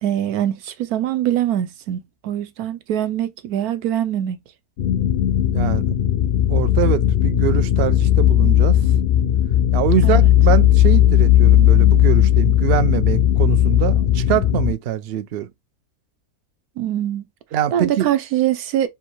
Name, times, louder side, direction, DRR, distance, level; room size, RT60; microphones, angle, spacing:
voice 1, 0.0-4.4 10.0-10.3 16.8-17.2 17.7-18.9, right 11 dB, 90° right, 1.2 m, -23 dB
sound 1, 4.8-14.7, left 12 dB, 65° left, 0.5 m, -16 dB
voice 2, 5.5-5.9 6.5-8.8 9.7-15.5 17.5-18.1, right 11 dB, 65° right, 0.6 m, -23 dB
3.5 x 2.6 x 4.4 m
omnidirectional pair, 1.5 m